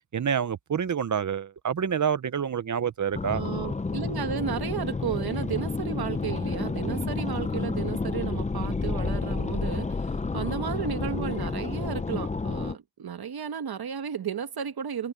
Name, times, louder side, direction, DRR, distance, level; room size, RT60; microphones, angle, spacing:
voice 1, 0.1-3.4 6.8-7.0, right 7 dB, 50° right, 0.8 m, -28 dB
sound 1, 3.1-12.7, left 4 dB, 20° left, 0.6 m, -30 dB
voice 2, 3.3-9.9 10.3-15.1, right 8 dB, 70° right, 1.3 m, -33 dB
wide cardioid pair, 135°, 39 cm